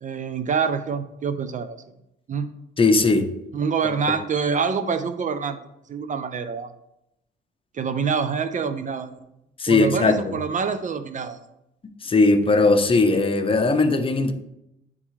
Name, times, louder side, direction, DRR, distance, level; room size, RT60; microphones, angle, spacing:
voice 1, 0.0-1.8 2.3-2.5 3.5-5.6 5.9-6.7 7.7-9.2 9.7-11.4, right 5 dB, 40° right, 10 dB, 0.5 m, -26 dB
voice 2, 2.8-3.3 9.6-10.3 12.0-14.3, left 3 dB, 25° left, 7 dB, 0.7 m, -19 dB
9.4 x 3.7 x 3.1 m, 0.86 s
cardioid pair, 90°, 20 cm